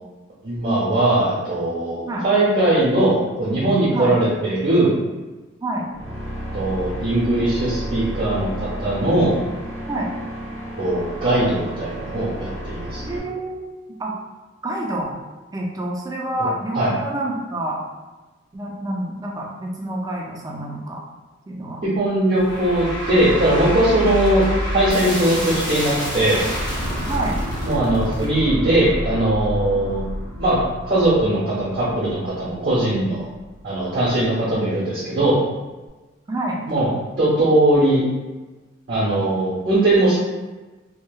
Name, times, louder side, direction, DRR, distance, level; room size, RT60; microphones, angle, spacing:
voice 1, 0.4-5.0 6.5-9.4 10.8-13.0 16.7-16.9 21.8-24.4 24.7-26.4 27.6-30.0 30.4-30.6 30.9-33.3 33.6-35.4 36.7-36.9 37.2-38.0 38.9-40.2, right 1 dB, 55° right, -9 dB, 0.6 m, -20 dB
sound 1, 5.9-13.2, right 1 dB, 65° left, 0.9 m, -32 dB
voice 2, 13.0-13.7 14.0-14.1 14.6-15.2 15.5-17.8 18.5-21.0 21.5-21.8 24.0-24.1 27.0-27.4 36.3-36.6, right 1 dB, 20° right, -2 dB, 0.3 m, -27 dB
sound 2, 22.4-33.6, equal, 20° left, 0.6 m, -28 dB
2.7 x 2.0 x 2.3 m, 1.2 s
head